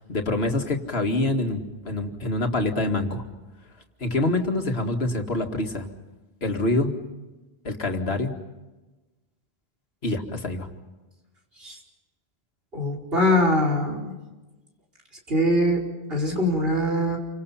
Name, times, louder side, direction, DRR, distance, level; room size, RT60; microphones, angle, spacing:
voice 1, 0.0-3.2 4.0-5.9 6.4-7.0 7.6-8.4 10.0-10.7, left 2 dB, 75° left, 4 dB, 2.4 m, -26 dB
voice 2, 12.7-14.1 15.3-17.2, left 1 dB, 65° right, 1 dB, 5.1 m, -23 dB
29.0 x 25.0 x 5.7 m, 1.1 s
omnidirectional pair, 1.1 m